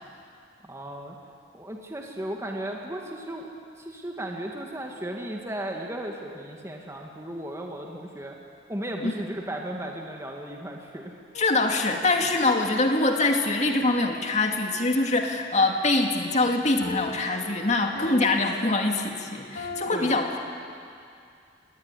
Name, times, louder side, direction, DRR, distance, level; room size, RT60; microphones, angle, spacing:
voice 1, 0.6-1.2 1.5-3.5 3.8-8.4 8.7-11.1 19.9-20.2, right 1 dB, 15° right, 0 dB, 2.1 m, -35 dB
sound 1, 11.3-12.4 16.8-20.0, left 2 dB, 75° left, 3.6 m, -41 dB
voice 2, 11.3-20.5, left 2 dB, 40° left, 3 dB, 2.3 m, -24 dB
24.5 x 19.5 x 9.9 m, 2.4 s
head